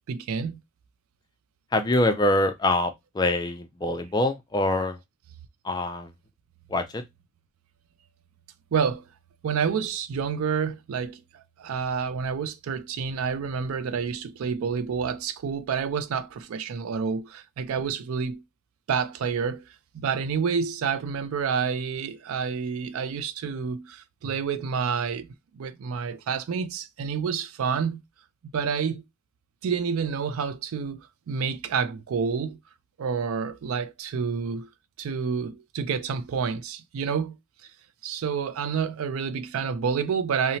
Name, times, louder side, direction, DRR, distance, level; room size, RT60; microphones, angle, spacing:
voice 1, 0.1-0.6 8.7-9.0 9.4-18.4 18.9-19.7 19.9-25.3 25.5-28.0 28.4-29.0 29.6-32.6 33.0-34.7 35.0-37.4 37.6-37.7 38.0-40.6, right 6 dB, 85° right, 0.4 m, -29 dB
voice 2, 1.7-5.0 5.6-6.1 6.7-7.0, left 1 dB, 20° left, 0.3 m, -24 dB
2.8 x 2.1 x 2.7 m
head